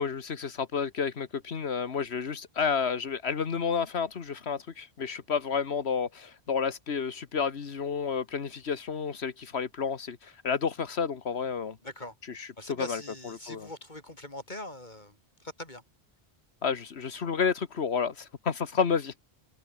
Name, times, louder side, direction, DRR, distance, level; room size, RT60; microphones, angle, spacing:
voice 1, 0.0-11.8 12.3-13.7 16.6-19.2, left 6 dB, 85° left, 1.6 m, -31 dB
voice 2, 11.8-12.1 12.6-15.8, left 1 dB, 45° left, 5.3 m, -42 dB
omnidirectional pair, 1.1 m